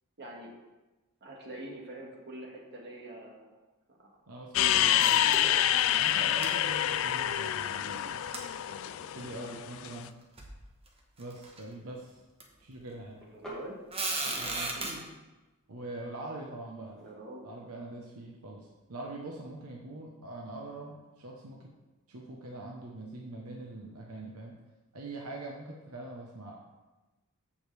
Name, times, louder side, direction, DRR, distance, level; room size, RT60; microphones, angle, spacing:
voice 1, 0.2-0.5 1.2-3.5 3.9-4.1 4.7-5.4 5.9-6.2 8.7-9.6 13.3-13.8 14.2-14.3 14.8-15.0 17.0-17.5, right 1 dB, 50° right, -2 dB, 1.9 m, -46 dB
voice 2, 4.3-5.3 6.0-8.3 9.1-10.1 11.2-12.2 12.6-13.2 14.3-14.8 15.7-17.0 17.4-21.6 22.1-24.6 24.9-26.6, right 2 dB, 80° right, -1 dB, 1.0 m, -43 dB
sound 1, 4.5-9.9, left 11 dB, 60° left, 0.3 m, -27 dB
sound 2, 5.0-5.8 6.1-6.2 6.4-6.5 8.3-8.4 9.2-9.3 10.1-10.2 10.4-10.6 11.2-11.6 12.4-12.5 13.9-14.9, right 3 dB, 25° right, 1.2 m, -35 dB
sound 3, 5.2-19.6, right 1 dB, 5° left, 2.1 m, -54 dB
14.5 x 5.1 x 3.4 m, 1.1 s
head